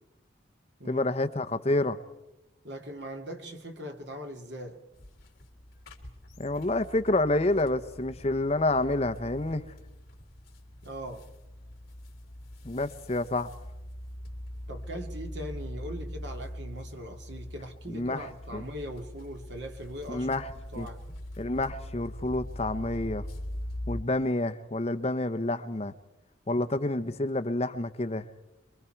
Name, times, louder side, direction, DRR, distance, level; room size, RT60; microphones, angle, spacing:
voice 1, 0.9-2.0 6.4-9.6 12.6-13.5 17.9-18.6 20.1-20.5 20.8-20.9 21.4-23.2 23.9-25.9 26.5-28.2, left 2 dB, 30° left, 10 dB, 0.7 m, -28 dB
voice 2, 2.6-4.8 10.8-11.3 14.7-20.3 20.7-21.0, equal, 65° right, 4 dB, 2.3 m, -40 dB
sound 1, 4.9-24.0, left 1 dB, 50° left, 3.4 m, -42 dB
26.5 x 23.0 x 4.5 m, 1.0 s
head